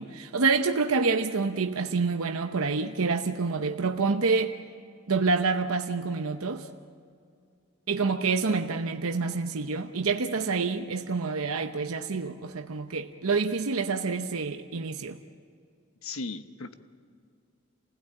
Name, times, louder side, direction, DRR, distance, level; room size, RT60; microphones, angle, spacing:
voice 1, 0.0-4.6 5.1-6.7 7.9-15.2, right 4 dB, 90° right, 0.9 m, -27 dB
voice 2, 16.0-16.7, left 3 dB, 85° left, 1.2 m, -36 dB
28.5 x 16.5 x 8.9 m
head